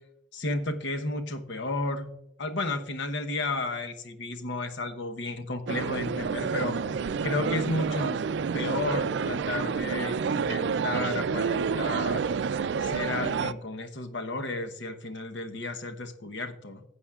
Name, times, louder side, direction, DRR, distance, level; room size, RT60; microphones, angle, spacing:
voice 1, 0.3-2.1 2.4-6.8 7.2-8.2 8.5-12.3 12.8-16.8, left 2 dB, 85° left, 7 dB, 1.0 m, -32 dB
sound 1, 5.7-13.5, right 6 dB, 75° right, 0.4 m, -29 dB
15.5 x 8.1 x 2.4 m, 0.81 s
head